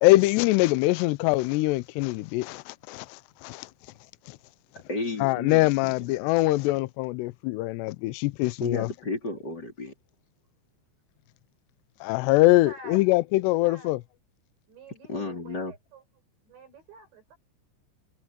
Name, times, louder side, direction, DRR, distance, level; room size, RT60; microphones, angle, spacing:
voice 1, 0.0-3.7 4.3-4.4 5.2-8.9 12.0-14.0, left 19 dB, 80° left, 2.7 m, -23 dB
voice 2, 4.9-6.1 8.6-9.9 15.1-15.7, left 3 dB, 25° left, 4.6 m, -33 dB
voice 3, 12.5-13.1 13.5-13.9 14.7-16.0 16.4-17.4, right 3 dB, 80° right, 9.7 m, -48 dB
omnidirectional pair, 5.1 m